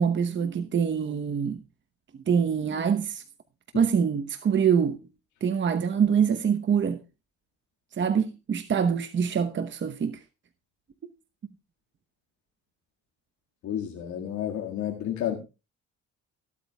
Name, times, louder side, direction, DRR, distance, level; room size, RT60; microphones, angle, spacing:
voice 1, 0.0-1.6 2.3-3.2 3.7-5.0 5.4-7.0 8.0-10.2, right 7 dB, 40° right, 1.0 m, -25 dB
voice 2, 13.6-15.4, left 10 dB, 75° left, 2.0 m, -31 dB
23.5 x 8.5 x 2.3 m
cardioid pair, 85°, 30 cm